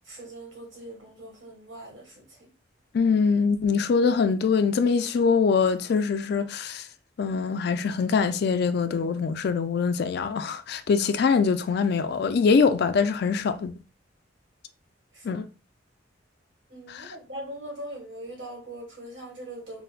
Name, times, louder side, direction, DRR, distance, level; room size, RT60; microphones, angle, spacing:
voice 1, 0.1-2.2 15.1-15.4 16.7-19.8, right 1 dB, 70° right, 1.6 m, -41 dB
voice 2, 2.9-6.9 7.2-13.7 15.2-15.5 16.9-17.1, left 5 dB, 60° left, 0.3 m, -23 dB
4.4 x 2.1 x 2.3 m
head